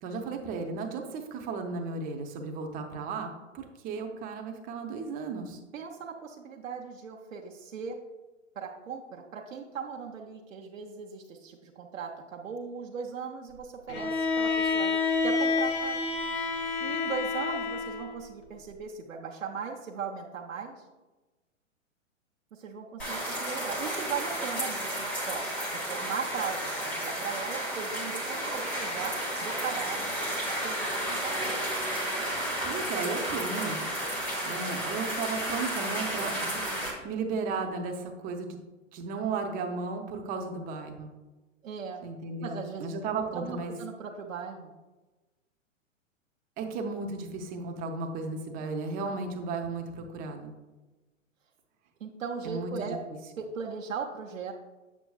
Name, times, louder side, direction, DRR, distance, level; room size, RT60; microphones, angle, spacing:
voice 1, 0.0-5.6 32.6-33.8 34.4-38.5 38.9-41.1 42.0-43.7 46.6-50.5 52.4-52.9, right 4 dB, 20° right, 4 dB, 0.7 m, -35 dB
voice 2, 5.7-8.0 8.5-16.0 16.8-20.7 22.5-25.5 25.9-30.1 30.6-31.6 41.6-42.0 42.4-42.9 43.3-44.7 48.4-48.6 52.0-53.0 53.4-54.5, right 6 dB, 75° right, -1 dB, 0.9 m, -38 dB
Bowed string instrument, 13.9-18.2, left 4 dB, 55° left, 1.2 m, -29 dB
sound 1, 23.0-36.9, right 1 dB, 5° left, 0.3 m, -32 dB
7.1 x 6.8 x 2.3 m, 1.2 s
hypercardioid pair, 120°, 39 cm